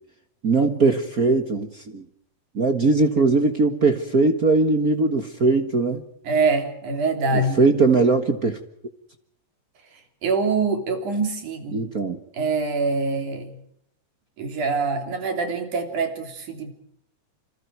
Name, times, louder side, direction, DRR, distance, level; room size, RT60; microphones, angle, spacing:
voice 1, 0.4-2.0 2.5-6.0 7.3-8.6 11.7-12.2, right 3 dB, 40° right, 7 dB, 1.5 m, -20 dB
voice 2, 6.2-7.6 10.2-11.8 12.3-13.5 14.4-16.7, right 4 dB, 90° right, 5 dB, 4.8 m, -24 dB
27.5 x 27.0 x 4.7 m, 0.71 s
omnidirectional pair, 3.4 m